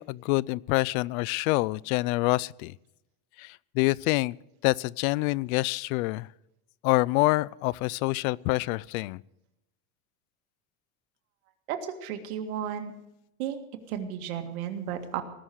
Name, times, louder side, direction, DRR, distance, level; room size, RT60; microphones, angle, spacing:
voice 1, 0.0-2.7 3.4-4.4 4.6-6.3 6.8-9.2, left 22 dB, 85° left, 25 dB, 0.5 m, -26 dB
voice 2, 11.7-12.9 13.4-13.6 13.9-15.2, right 9 dB, 90° right, 6 dB, 2.0 m, -33 dB
19.0 x 6.5 x 9.2 m, 0.89 s
supercardioid pair, 130°, 41 cm